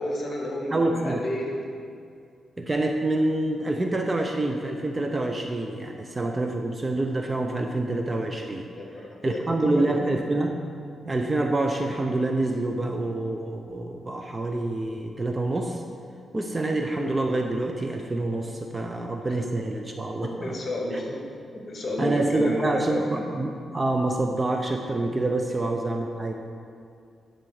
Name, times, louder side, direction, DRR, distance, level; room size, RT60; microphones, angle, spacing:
voice 1, 0.0-1.5 8.8-10.0 20.2-21.3 21.7-23.2 25.5-25.6, left 1 dB, 35° left, -2 dB, 2.0 m, -31 dB
voice 2, 0.7-1.2 2.6-8.7 8.9-10.6 11.0-15.8 16.3-20.5 20.9-21.0 22.0-26.3, right 2 dB, 20° right, 3 dB, 0.6 m, -27 dB
10.5 x 4.4 x 6.4 m, 2.4 s
cardioid pair, 110°, 0 cm